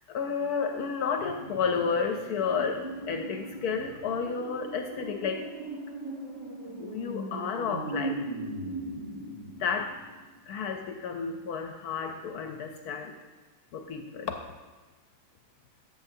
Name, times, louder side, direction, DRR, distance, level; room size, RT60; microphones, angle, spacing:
voice 1, 0.1-5.4 6.8-8.2 9.6-10.0 10.5-13.1 13.7-14.5, left 6 dB, 70° left, 5 dB, 1.0 m, -31 dB
sound 1, 1.2-10.3 10.6-10.7, right 2 dB, 20° right, 1.3 m, -39 dB
12.0 x 6.7 x 2.7 m, 1.3 s
omnidirectional pair, 1.8 m